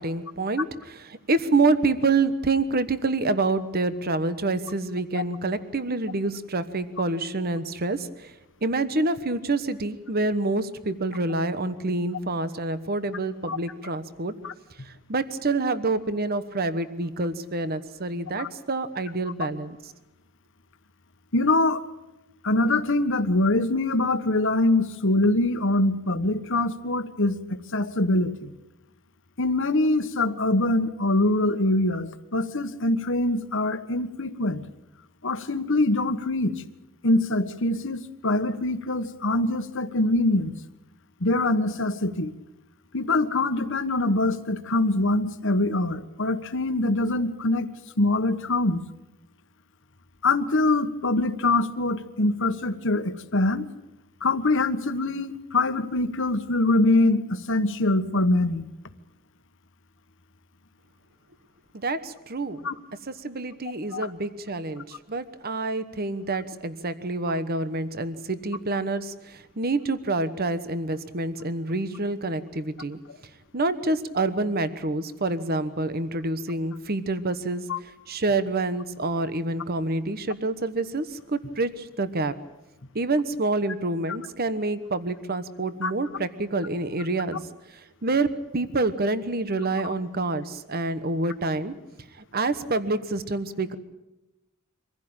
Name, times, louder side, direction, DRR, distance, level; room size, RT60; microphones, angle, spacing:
voice 1, 0.0-8.3 8.6-14.3 14.8-19.8 61.7-62.7 63.1-73.0 73.5-77.6 78.1-82.3 82.9-91.7 92.1-93.8, right 2 dB, 45° right, 12 dB, 1.2 m, -27 dB
voice 2, 21.3-21.8 22.4-28.5 29.4-34.6 35.2-36.6 37.0-40.5 41.2-42.3 42.9-47.7 48.0-48.8 50.2-53.7 54.2-58.7 62.6-62.7 63.9-64.1 77.7-77.8 85.8-85.9, left 2 dB, 60° left, 9 dB, 1.4 m, -24 dB
25.0 x 16.0 x 8.9 m, 0.98 s
head